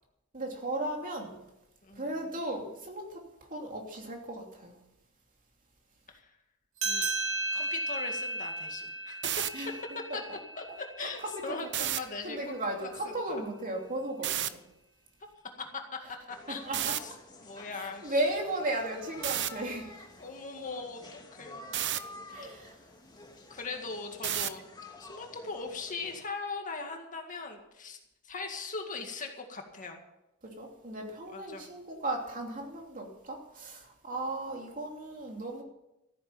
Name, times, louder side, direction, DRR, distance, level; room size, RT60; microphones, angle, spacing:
voice 1, 0.3-1.4 1.9-3.2 3.5-4.8 9.5-9.7 10.1-10.4 11.0-11.5 12.2-14.6 16.5-17.0 17.7-19.9 22.3-22.8 30.4-35.6, right 1 dB, 40° right, 2.9 m, -36 dB
voice 2, 6.8-7.2 7.5-9.3 10.1-10.2 10.6-12.9 13.3-13.5 15.6-16.0 16.3-16.7 17.0-17.1 17.4-18.2 20.2-21.6 23.5-24.6 25.0-28.0 28.2-30.0 31.3-31.7, left 4 dB, 40° left, 2.0 m, -40 dB
sound 1, 6.8-11.7, right 2 dB, 85° right, 4.2 m, -35 dB
sound 2, 9.1-9.5 11.7-12.0 14.2-14.5 16.7-17.0 19.2-19.5 21.7-22.0 24.2-24.6, right 12 dB, 55° right, 0.7 m, -30 dB
sound 3, 16.3-26.2, left 2 dB, 20° left, 1.7 m, -50 dB
14.5 x 9.6 x 7.2 m
head